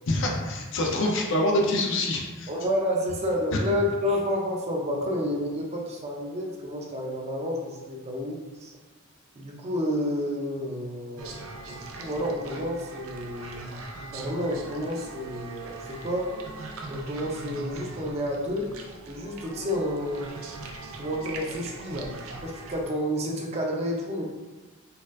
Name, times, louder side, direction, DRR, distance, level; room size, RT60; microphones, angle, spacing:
voice 1, 0.1-2.5, left 1 dB, 65° left, 0 dB, 0.5 m, -25 dB
voice 2, 2.5-8.7 9.4-11.4 11.7-13.6 14.1-16.3 16.9-18.7 19.1-20.3 21.0-24.2, equal, 30° right, -1 dB, 0.5 m, -30 dB
sound 1, 11.2-22.9, right 2 dB, 85° right, 0.5 m, -41 dB
4.1 x 2.4 x 2.5 m, 1.3 s
head